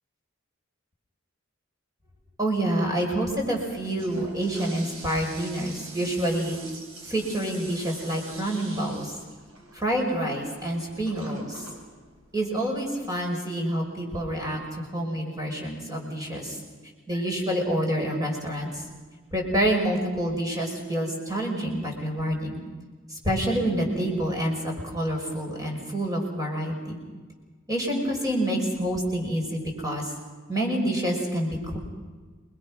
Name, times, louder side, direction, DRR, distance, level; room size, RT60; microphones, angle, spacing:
voice 1, 2.4-6.6 7.1-9.1 9.7-11.7 12.3-16.6 17.1-18.8 19.3-22.6 23.1-27.0 27.7-30.1 30.5-31.8, right 1 dB, 20° right, 0 dB, 5.9 m, -27 dB
Toilet flush, 3.8-13.1, right 2 dB, 80° right, 5.5 m, -45 dB
28.5 x 22.0 x 6.3 m, 1.4 s
head